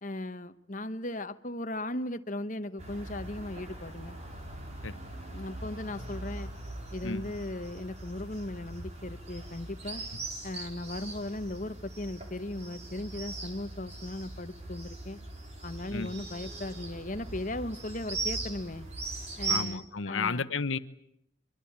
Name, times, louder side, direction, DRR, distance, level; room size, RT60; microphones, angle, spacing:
voice 1, 0.0-4.2 5.3-6.5 6.9-10.0 10.4-15.2 15.6-18.9 19.4-20.4, left 1 dB, 40° left, 11 dB, 1.1 m, -37 dB
sound 1, 2.8-19.6, right 3 dB, 35° right, 4.9 m, -40 dB
voice 2, 19.5-20.8, left 4 dB, 80° left, 14 dB, 1.0 m, -32 dB
24.5 x 24.0 x 8.7 m, 0.76 s
head